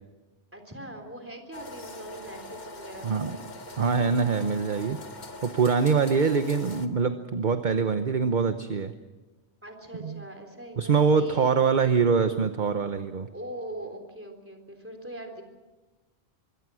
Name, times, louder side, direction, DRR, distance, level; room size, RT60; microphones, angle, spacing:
voice 1, 0.5-3.3 9.6-11.8 13.3-15.4, right 1 dB, 10° right, 5 dB, 3.6 m, -41 dB
sound 1, 1.5-6.9, left 2 dB, 40° left, 1.5 m, -43 dB
voice 2, 3.0-3.4 3.8-5.0 5.4-8.9 10.0-10.2 10.8-13.3, right 5 dB, 45° right, 9 dB, 1.0 m, -24 dB
25.0 x 23.0 x 6.3 m, 1.2 s
omnidirectional pair, 1.2 m